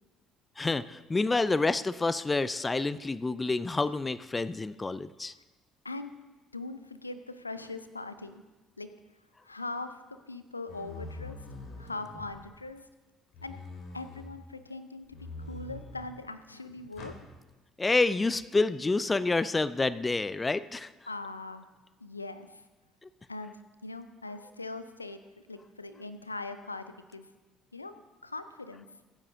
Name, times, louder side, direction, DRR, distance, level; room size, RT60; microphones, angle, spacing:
voice 1, 0.6-5.3 17.8-20.9 23.0-23.1, left 3 dB, 20° left, 16 dB, 0.4 m, -28 dB
voice 2, 6.5-8.4 8.8-8.9 9.4-10.0 10.3-11.4 11.8-12.9 13.4-13.6 13.9-17.1 21.1-21.7 22.0-22.6 23.3-25.2 25.5-27.3 27.7-27.9 28.2-29.0, left 3 dB, 85° left, 11 dB, 0.5 m, -41 dB
sound 1, 10.7-12.6 13.3-14.3 15.1-16.2 16.9-17.2, left 3 dB, 55° left, 2.5 m, -44 dB
22.5 x 9.7 x 2.7 m, 1.2 s
figure-of-eight pair, 55°, 0 cm